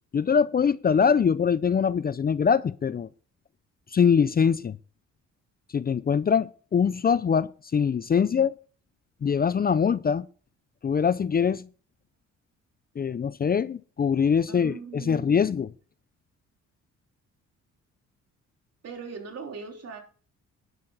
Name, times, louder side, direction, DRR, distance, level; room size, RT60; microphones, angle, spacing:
voice 1, 0.1-3.1 3.9-4.8 5.7-8.5 9.2-10.3 10.8-11.7 13.0-15.7, left 6 dB, 30° left, 0.5 m, -23 dB
voice 2, 14.5-15.4 18.8-20.0, right 5 dB, 55° right, 3.5 m, -39 dB
12.0 x 10.5 x 4.0 m
cardioid pair, 90°, 30 cm